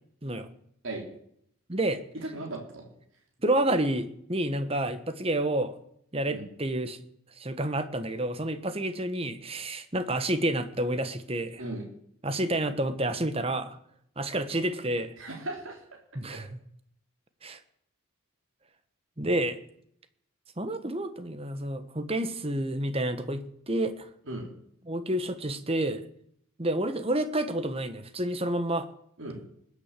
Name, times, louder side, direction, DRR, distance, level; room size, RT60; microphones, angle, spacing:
voice 1, 1.7-2.0 3.4-5.8 6.1-7.0 7.4-11.6 12.2-13.8 14.2-15.1 16.1-16.6 17.4-17.6 19.2-19.6 20.6-24.1 24.9-26.0 26.6-28.9, right 1 dB, 25° right, 10 dB, 1.2 m, -29 dB
voice 2, 2.3-2.8 6.3-6.4 11.6-11.9 15.2-15.8 24.3-24.5 29.2-29.4, right 2 dB, 65° right, 0 dB, 3.8 m, -36 dB
20.5 x 8.5 x 7.5 m, 0.69 s
head